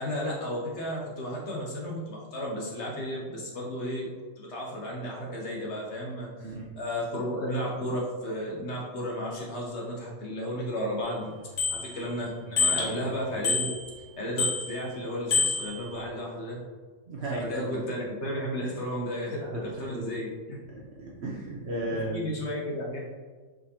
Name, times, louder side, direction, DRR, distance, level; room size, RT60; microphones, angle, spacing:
voice 1, 0.0-4.1 4.4-11.3 11.7-13.7 14.2-16.6 17.2-20.6 21.8-23.0, equal, 55° left, -3 dB, 0.9 m, -33 dB
Bicycle bell, 11.0-11.1 11.6-12.2 12.6-13.0 13.4-14.0 14.4-14.9 15.3-16.0, left 4 dB, 85° left, 1.6 m, -28 dB
voice 2, 12.7-13.1 17.1-17.8 19.3-19.6 19.9-20.1 20.7-22.3, right 1 dB, 60° right, -4 dB, 0.7 m, -35 dB
4.4 x 3.7 x 2.7 m, 1.4 s
omnidirectional pair, 1.6 m